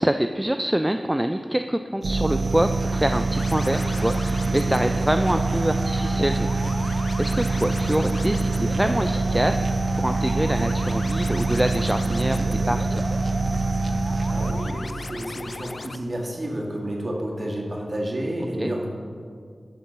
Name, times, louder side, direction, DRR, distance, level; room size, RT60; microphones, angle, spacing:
voice 1, 0.0-6.8 7.2-9.6 10.0-12.9 18.6-18.7, right 1 dB, 15° right, 7 dB, 0.3 m, -25 dB
sound 1, 2.0-15.0, right 3 dB, 75° right, 0.5 m, -25 dB
sound 2, 3.4-16.0, left 3 dB, 60° left, 0.4 m, -37 dB
voice 2, 14.3-18.9, right 1 dB, 40° right, -2 dB, 1.8 m, -30 dB
11.0 x 3.9 x 6.7 m, 2.1 s
cardioid pair, 50°, 0 cm